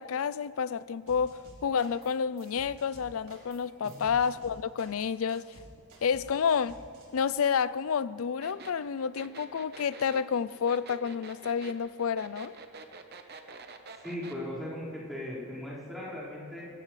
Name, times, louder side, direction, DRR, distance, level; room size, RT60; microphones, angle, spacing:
voice 1, 0.0-5.5 6.0-6.8 7.1-12.5, left 6 dB, 70° left, 0.4 m, -30 dB
sound 1, 1.1-2.1 2.4-7.1, right 1 dB, 80° right, 3.6 m, -52 dB
sound 2, 8.4-14.4, right 4 dB, 45° right, 1.0 m, -47 dB
voice 2, 14.0-16.7, left 1 dB, ahead, 4.7 m, -38 dB
23.0 x 17.5 x 3.3 m
head